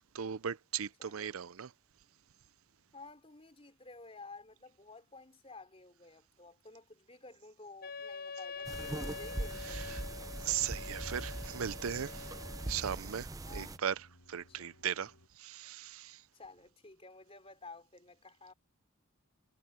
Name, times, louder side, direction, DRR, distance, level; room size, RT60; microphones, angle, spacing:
voice 1, 0.1-1.7 9.6-10.0 10.4-12.3 12.7-16.2, right 9 dB, 85° right, 0.6 m, -38 dB
voice 2, 1.0-1.3 2.9-10.3 13.4-13.7 14.6-14.7 16.3-18.5, left 3 dB, 30° left, 3.8 m, -53 dB
Wind instrument woodwind instrument, 7.8-12.9, left 4 dB, 45° left, 0.8 m, -45 dB
sound 1, 8.5-15.3, equal, 85° left, 7.6 m, -64 dB
sound 2, 8.7-13.8, right 2 dB, 15° right, 0.5 m, -41 dB
head